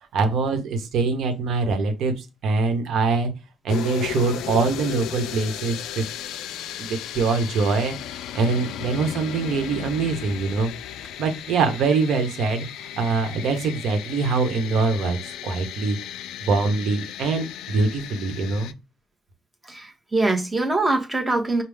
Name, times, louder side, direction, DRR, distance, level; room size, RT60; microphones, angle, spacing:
voice 1, 0.1-3.3 3.6-6.0 6.8-7.9 8.3-10.7 11.2-16.0 16.4-18.7, right 4 dB, 60° right, 1.2 m, -23 dB
sound 1, 3.7-18.7, left 11 dB, 70° left, 0.4 m, -35 dB
voice 2, 19.6-21.6, right 2 dB, 10° right, 1.2 m, -23 dB
5.4 x 2.3 x 3.5 m
cardioid pair, 115°, 0 cm